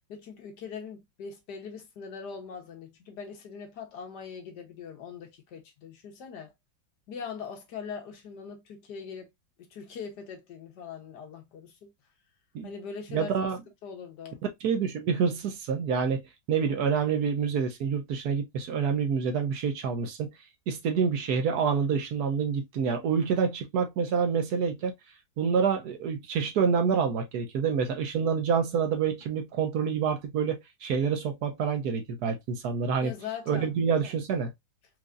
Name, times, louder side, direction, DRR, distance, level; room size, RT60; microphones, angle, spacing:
voice 1, 0.1-6.5 7.1-9.3 9.6-11.9 12.6-13.3 13.8-14.4 33.0-33.7, left 6 dB, 70° left, 1.5 m, -41 dB
voice 2, 13.1-13.6 14.6-16.2 16.5-20.3 20.7-24.9 25.4-33.1 33.5-34.5, right 6 dB, 65° right, 1.1 m, -27 dB
4.6 x 2.6 x 2.4 m
omnidirectional pair, 1.9 m